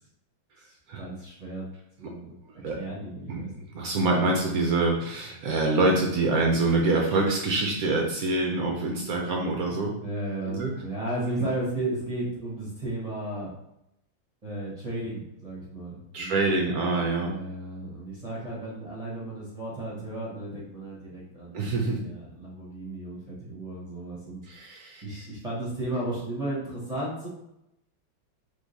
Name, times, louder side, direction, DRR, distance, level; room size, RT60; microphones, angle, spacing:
voice 1, 0.6-1.7 2.0-2.4 2.6-3.5 10.0-13.5 14.4-16.9 17.2-24.5 25.0-27.3, right 1 dB, 30° right, -6 dB, 0.7 m, -34 dB
voice 2, 3.7-9.9 10.4-10.7 16.1-17.3 21.5-22.0 24.5-25.0, right 2 dB, 75° right, 0 dB, 0.8 m, -25 dB
3.8 x 3.1 x 4.0 m, 0.84 s
omnidirectional pair, 2.2 m